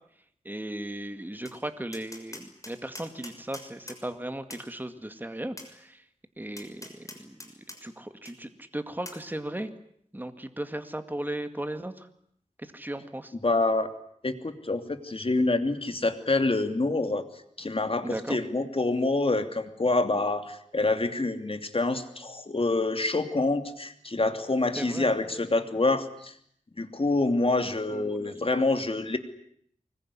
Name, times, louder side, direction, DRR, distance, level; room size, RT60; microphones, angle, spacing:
voice 1, 0.4-6.0 6.4-7.5 7.8-9.7 10.1-12.1 12.6-13.3 18.0-18.4 24.8-25.1 27.9-28.6, right 1 dB, 15° right, 8 dB, 2.2 m, -36 dB
Tap, 1.5-1.6 1.9-4.0 4.5-4.7 5.6-5.7 6.6-7.8 8.3-8.4 9.1-9.2, left 1 dB, 25° left, 6.3 m, -43 dB
voice 2, 13.4-13.9 14.2-17.2 17.6-26.3 26.8-29.2, left 2 dB, 45° left, 8 dB, 2.9 m, -26 dB
24.5 x 22.0 x 10.0 m, 0.68 s
wide cardioid pair, 65°, 13 cm